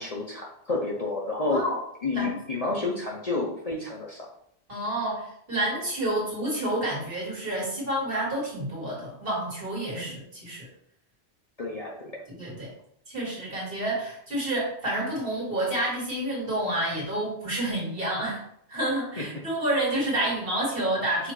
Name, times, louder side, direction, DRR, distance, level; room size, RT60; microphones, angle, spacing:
voice 1, 0.0-1.7 2.0-4.3 10.0-10.2 11.6-12.2 19.2-19.3, left 3 dB, 40° left, -2 dB, 0.7 m, -30 dB
voice 2, 4.7-10.7 12.3-12.7 13.1-18.4 18.7-21.3, right 1 dB, 55° right, -5 dB, 2.0 m, -29 dB
5.9 x 2.5 x 3.1 m, 0.71 s
omnidirectional pair, 1.1 m